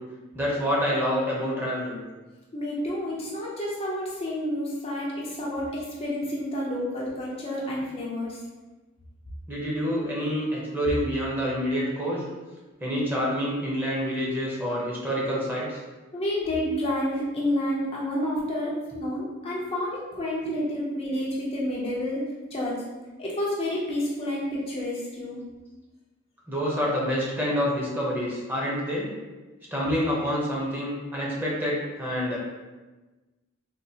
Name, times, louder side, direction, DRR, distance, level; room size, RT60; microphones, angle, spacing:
voice 1, 0.3-2.0 9.5-12.2 12.8-15.8 26.5-29.1 29.7-32.4, equal, 10° right, -5 dB, 0.7 m, -27 dB
voice 2, 2.5-8.4 16.1-22.2 22.5-22.8 23.2-25.4, left 1 dB, 30° left, -5 dB, 0.5 m, -29 dB
3.7 x 2.4 x 2.7 m, 1.2 s
head